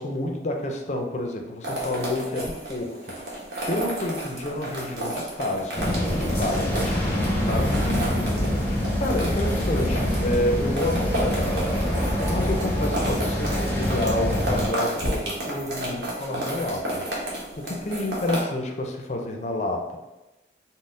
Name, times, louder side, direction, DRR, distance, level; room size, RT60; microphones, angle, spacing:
voice 1, 0.0-3.4 3.7-20.0, left 1 dB, 40° left, 2 dB, 0.4 m, -30 dB
sound 1, 1.6-18.4, right 1 dB, 70° right, 1.0 m, -32 dB
sound 2, 5.7-14.7, equal, 10° left, 0.8 m, -25 dB
4.0 x 2.0 x 3.7 m, 1.0 s
head